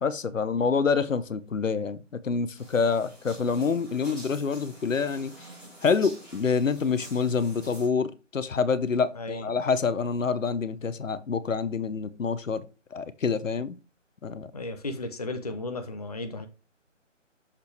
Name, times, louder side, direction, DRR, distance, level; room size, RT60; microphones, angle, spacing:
voice 1, 0.0-5.3 5.8-12.6 12.9-13.8 14.2-14.5, left 5 dB, 80° left, 0.8 m, -27 dB
sound 1, 2.5-7.9, right 1 dB, ahead, 0.8 m, -47 dB
voice 2, 9.1-9.5 14.5-16.5, left 2 dB, 30° left, 0.6 m, -34 dB
6.8 x 5.7 x 3.3 m
figure-of-eight pair, 155°, 38 cm